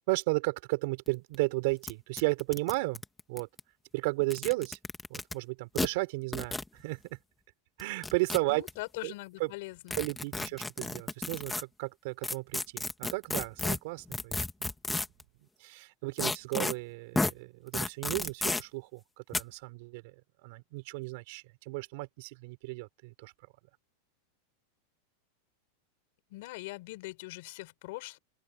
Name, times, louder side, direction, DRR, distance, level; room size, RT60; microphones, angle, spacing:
voice 1, 0.0-3.0 3.3-3.5 3.9-4.8 5.1-7.2 7.8-8.6 9.0-9.1 9.4-9.5 10.0-14.4 15.6-20.1 20.4-23.3, right 24 dB, 50° right, 4.4 m, -34 dB
sound 1, 1.1-1.2 1.3-1.4 1.8-1.9 2.2-3.6 4.2-5.3 5.8-5.9 6.3-6.7 7.8-8.7 9.9-11.6 12.2-15.2 16.2-16.7 17.2-17.3 17.7-18.6 19.3-19.4, left 2 dB, 5° left, 1.7 m, -32 dB
voice 2, 8.4-10.0 10.4-10.5 26.3-28.2, left 21 dB, 50° left, 5.7 m, -42 dB
open air
supercardioid pair, 170°, 0 cm